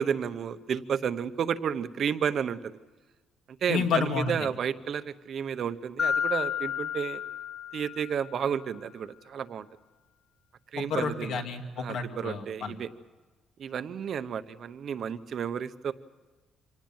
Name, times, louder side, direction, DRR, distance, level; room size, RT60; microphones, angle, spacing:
voice 1, 0.0-2.8 3.6-7.2 7.7-9.7 10.7-11.4 11.8-12.9 13.6-15.9, right 7 dB, 45° right, 11 dB, 0.8 m, -31 dB
voice 2, 3.7-4.3 10.8-12.8, left 5 dB, 70° left, 4 dB, 2.5 m, -30 dB
Mallet percussion, 6.0-8.5, left 8 dB, 40° left, 6.4 m, -32 dB
26.0 x 18.0 x 7.3 m, 1.3 s
cardioid pair, 175°, 0 cm